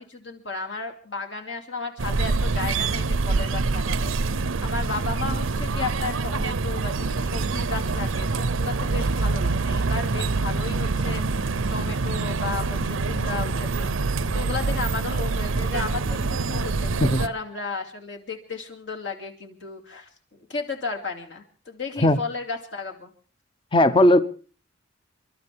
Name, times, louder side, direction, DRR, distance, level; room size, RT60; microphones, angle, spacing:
voice 1, 0.0-4.1 4.6-13.9 14.3-23.1, left 4 dB, 65° left, 2.5 m, -34 dB
sound 1, 2.0-17.3, right 3 dB, 85° right, 0.7 m, -25 dB
voice 2, 23.7-24.2, left 1 dB, 25° left, 0.7 m, -17 dB
30.0 x 12.0 x 3.5 m
head